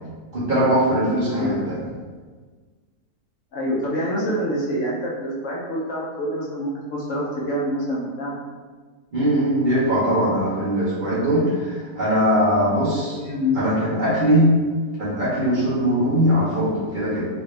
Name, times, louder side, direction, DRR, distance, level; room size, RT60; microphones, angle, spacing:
voice 1, 0.3-1.8 9.1-13.2 13.5-14.5 15.0-17.3, equal, 40° right, -9 dB, 0.9 m, -20 dB
voice 2, 1.3-1.8 3.5-8.4 13.1-13.6, equal, 65° left, -5 dB, 0.9 m, -26 dB
3.2 x 2.6 x 3.2 m, 1.4 s
omnidirectional pair, 1.6 m